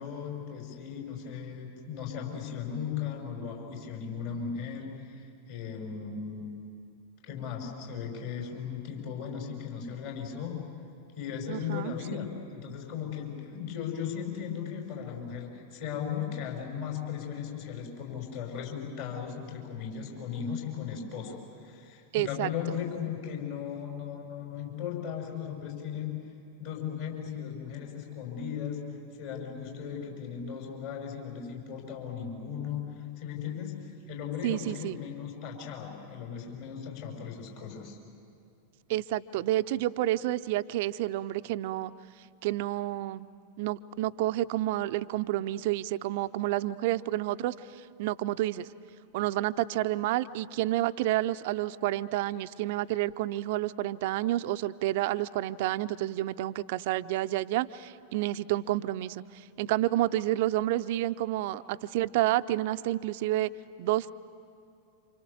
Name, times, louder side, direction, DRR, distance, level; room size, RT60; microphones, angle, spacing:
voice 1, 0.0-6.5 7.2-10.6 11.1-21.4 21.6-26.2 26.6-28.8 29.2-32.9 33.2-33.8 34.1-38.0, left 7 dB, 55° left, 0 dB, 6.4 m, -37 dB
voice 2, 11.5-12.2 22.1-22.5 34.4-35.0 38.9-41.9 42.4-43.3 43.6-47.6 48.0-48.7 49.1-63.5 63.8-64.1, right 15 dB, 50° right, 14 dB, 0.6 m, -29 dB
28.5 x 26.5 x 7.2 m, 2.7 s
figure-of-eight pair, 90°, 0 cm